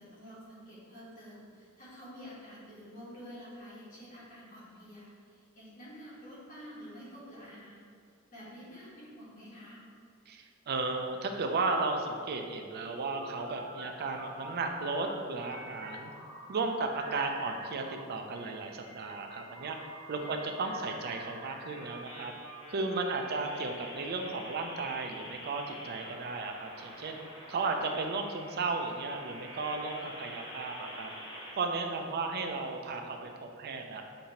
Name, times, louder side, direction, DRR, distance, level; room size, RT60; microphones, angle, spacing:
voice 1, 0.0-7.9 8.3-9.8 20.2-20.4 31.9-32.1, equal, 40° left, -9 dB, 1.4 m, -49 dB
voice 2, 10.3-16.1 16.5-19.8 20.1-22.3 22.7-27.2 27.5-31.1 31.5-34.0, right 3 dB, 50° right, 4 dB, 0.4 m, -34 dB
sound 1, 12.4-15.1 15.4-18.0 18.3-31.5, equal, 20° left, 1.0 m, -47 dB
6.5 x 2.7 x 2.9 m, 2.4 s
head